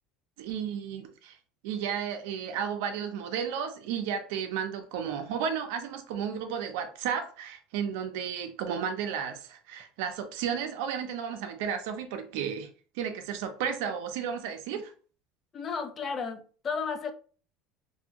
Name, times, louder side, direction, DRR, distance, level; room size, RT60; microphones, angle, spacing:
voice 1, 0.4-1.4 1.6-12.7 13.0-14.9, right 7 dB, 75° right, 0.6 m, -33 dB
voice 2, 15.5-17.1, left 5 dB, 25° left, 0.3 m, -33 dB
2.7 x 2.5 x 2.8 m
cardioid pair, 155°, 0 cm